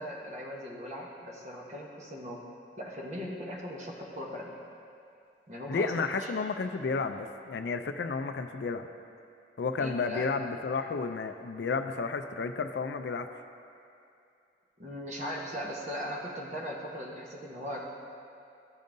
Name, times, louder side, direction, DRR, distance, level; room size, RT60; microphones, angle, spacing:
voice 1, 0.0-2.4 2.8-4.5 5.5-6.0 9.8-10.3 14.8-17.9, equal, 40° right, -2 dB, 1.0 m, -39 dB
voice 2, 5.7-8.9 9.6-13.3, left 4 dB, 65° left, 7 dB, 0.4 m, -32 dB
13.5 x 5.3 x 2.6 m, 2.5 s
head